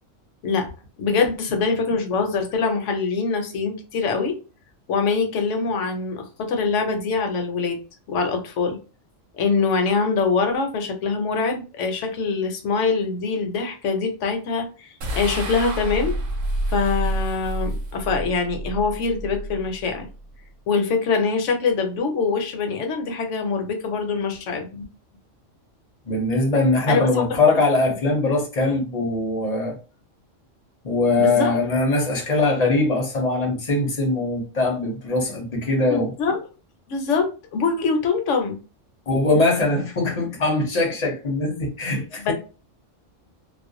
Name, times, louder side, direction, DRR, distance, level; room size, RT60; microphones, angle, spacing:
voice 1, 1.0-4.4 4.9-7.8 8.1-8.8 9.4-16.2 16.7-20.1 20.7-24.8 26.9-27.4 31.2-31.5 35.9-36.4 36.9-38.6 42.2-42.3, left 4 dB, 70° left, 0.9 m, -24 dB
sound 1, 15.0-20.4, right 1 dB, 80° right, 1.0 m, -29 dB
voice 2, 26.1-29.8 30.8-36.1 39.1-42.3, left 2 dB, 40° left, 0.7 m, -21 dB
2.4 x 2.1 x 2.5 m
omnidirectional pair, 1.3 m